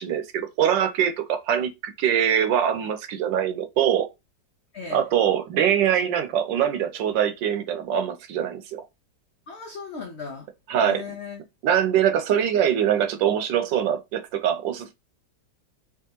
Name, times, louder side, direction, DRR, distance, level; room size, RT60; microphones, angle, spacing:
voice 1, 0.0-4.1 4.9-8.8 10.7-11.0 11.6-14.9, right 9 dB, 80° right, 1.3 m, -23 dB
voice 2, 4.7-5.0 9.5-10.5 10.8-11.4, left 5 dB, 75° left, 0.6 m, -36 dB
3.5 x 3.0 x 2.9 m
omnidirectional pair, 2.0 m